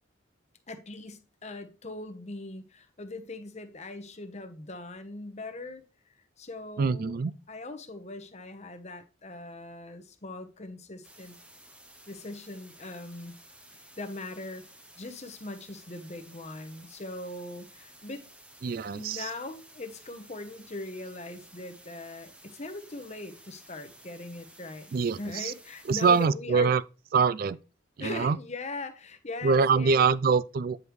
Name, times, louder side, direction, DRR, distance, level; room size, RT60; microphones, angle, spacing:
voice 1, 0.7-5.8 6.4-7.2 7.5-11.3 12.1-13.3 13.7-14.6 15.0-18.2 18.9-24.9 25.2-26.7 28.0-30.1, left 2 dB, 35° left, 1.0 m, -40 dB
voice 2, 6.8-7.3 18.6-19.3 24.9-25.5 25.9-26.8 27.1-27.6 28.0-28.4 29.4-30.8, right 5 dB, 50° right, 0.3 m, -24 dB
sound 1, 11.0-26.3, right 1 dB, 5° right, 0.7 m, -54 dB
9.6 x 5.1 x 3.1 m
head